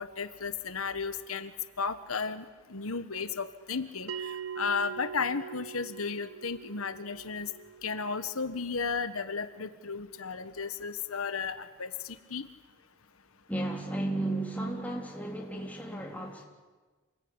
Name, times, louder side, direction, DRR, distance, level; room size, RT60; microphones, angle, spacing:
voice 1, 0.0-1.5 1.8-4.3 4.6-7.5 7.8-12.5, left 5 dB, 85° left, 10 dB, 1.4 m, -34 dB
Bell, 4.1-9.1, right 7 dB, 75° right, 0.7 m, -43 dB
voice 2, 13.5-16.5, right 1 dB, 5° left, 0 dB, 3.5 m, -34 dB
27.5 x 21.0 x 9.9 m, 1.3 s
head